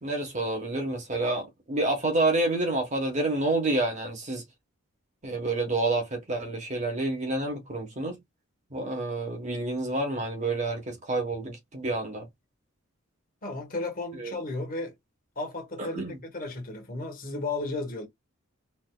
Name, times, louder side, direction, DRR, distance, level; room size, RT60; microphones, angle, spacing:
voice 1, 0.0-4.4 5.2-8.2 8.7-12.3 14.1-14.4 15.8-16.2, right 2 dB, 35° right, 1.1 m, -28 dB
voice 2, 13.4-14.9 15.4-18.1, left 2 dB, 40° left, 1.2 m, -34 dB
4.3 x 2.6 x 2.2 m
head